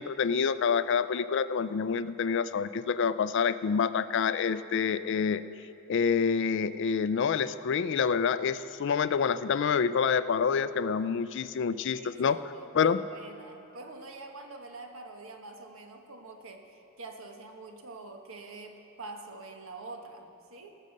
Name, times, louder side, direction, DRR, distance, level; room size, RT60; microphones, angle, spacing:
voice 1, 0.0-5.4 5.9-12.4 12.7-13.0, left 6 dB, 55° left, 14 dB, 0.4 m, -27 dB
voice 2, 11.9-20.8, right 3 dB, 70° right, 3 dB, 1.3 m, -46 dB
18.5 x 6.5 x 6.6 m, 2.7 s
head